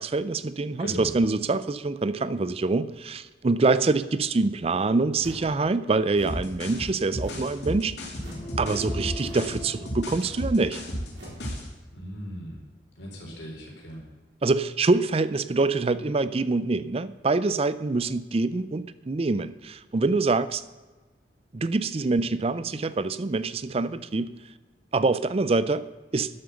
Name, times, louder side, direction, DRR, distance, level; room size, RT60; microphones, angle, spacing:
voice 1, 0.0-7.9 8.6-10.8 14.4-20.6 21.5-24.3 24.9-25.8 26.1-26.3, right 3 dB, 35° right, 15 dB, 0.4 m, -25 dB
sound 1, 5.2-5.6 6.1-6.5 7.2-7.6 8.2-8.5 9.2-9.5 10.1-10.5 11.1-11.5, equal, 70° right, 3.6 m, -43 dB
sound 2, 6.3-11.7, equal, 65° left, 2.5 m, -33 dB
sound 3, 8.1-10.8, left 2 dB, 25° left, 3.6 m, -42 dB
voice 2, 11.9-12.6 13.0-14.0, equal, 80° left, -1 dB, 4.1 m, -37 dB
12.0 x 7.7 x 7.0 m, 1.2 s
head